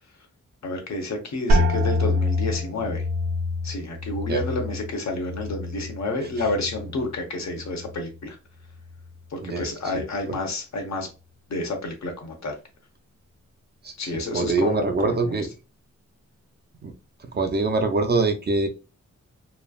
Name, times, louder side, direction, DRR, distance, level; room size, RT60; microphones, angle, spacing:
voice 1, 0.6-3.0 3.6-8.4 9.3-11.1 11.5-12.6 14.0-15.4, left 2 dB, 70° left, 3 dB, 0.9 m, -30 dB
sound 1, 1.5-7.1 7.4-8.1 8.7-9.1, left 2 dB, 65° right, 0.8 m, -27 dB
voice 2, 13.8-15.5 16.8-16.9 17.3-18.7, right 3 dB, 35° right, 5 dB, 0.4 m, -24 dB
3.1 x 2.4 x 2.3 m, 0.30 s
wide cardioid pair, 130°, 29 cm